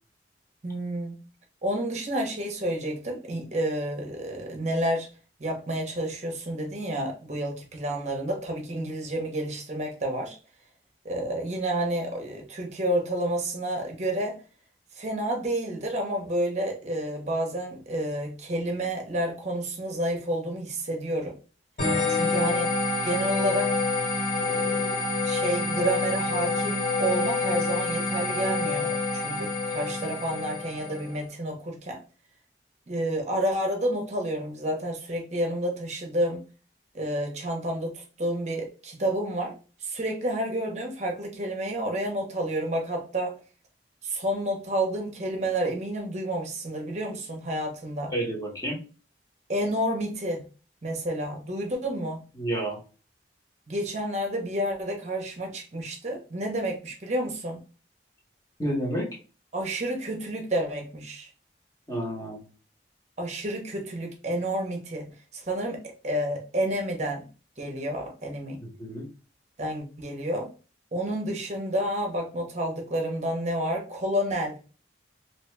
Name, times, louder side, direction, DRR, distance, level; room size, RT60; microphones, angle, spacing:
voice 1, 0.6-1.2 1.6-5.1 5.4-10.4 11.0-14.4 15.0-21.4 22.1-22.7 23.0-23.8 24.4-24.7 25.2-32.0 32.9-36.4 36.9-39.5 39.8-43.3 44.0-48.1 49.5-50.5 50.8-52.2 53.7-57.6 59.5-61.3 63.2-67.2 67.6-68.6 69.6-70.5 70.9-74.6, right 1 dB, 40° right, 0.7 m, -30 dB
sound 1, 21.8-31.2, left 3 dB, 60° left, 1.8 m, -27 dB
voice 2, 48.1-48.8 52.4-52.8 58.6-59.1 61.9-62.4 68.6-69.0, right 1 dB, 20° left, 0.9 m, -30 dB
2.8 x 2.7 x 3.3 m
head